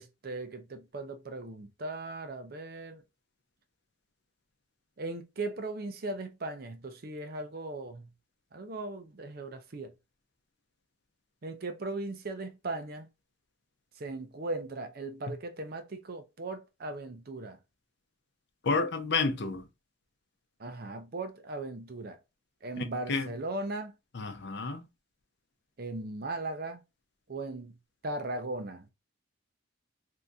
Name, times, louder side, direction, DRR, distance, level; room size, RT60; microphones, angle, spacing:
voice 1, 0.0-3.0 5.0-8.1 8.5-9.9 11.4-13.1 13.9-17.6 20.6-22.2 22.6-23.9 25.8-26.8 27.3-27.8 28.0-28.9, right 2 dB, 50° right, 0.6 m, -38 dB
voice 2, 18.6-19.6 22.8-23.3 24.1-24.9, left 4 dB, 55° left, 0.6 m, -30 dB
2.7 x 2.6 x 3.4 m
head